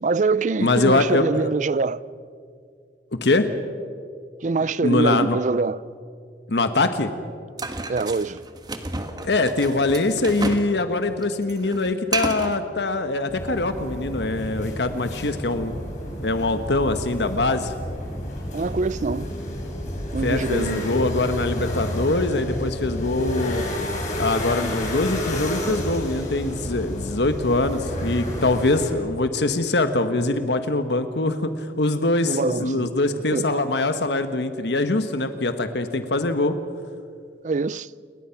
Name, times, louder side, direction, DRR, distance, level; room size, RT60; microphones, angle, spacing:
voice 1, 0.0-2.0 4.4-5.8 7.9-8.4 18.5-19.3 20.1-20.9 32.3-32.9 33.3-33.5 37.4-37.9, right 4 dB, 45° right, 0.5 m, -24 dB
voice 2, 0.6-1.5 3.2-3.5 4.8-5.4 6.5-7.1 9.2-15.8 16.2-17.7 20.2-23.6 24.2-31.5 31.8-36.6, left 2 dB, 75° left, 1.2 m, -23 dB
sound 1, 7.6-10.7 11.0-12.6, right 2 dB, 25° right, 1.4 m, -30 dB
sound 2, 13.3-28.9, left 1 dB, 45° left, 5.7 m, -30 dB
29.0 x 20.5 x 5.9 m
head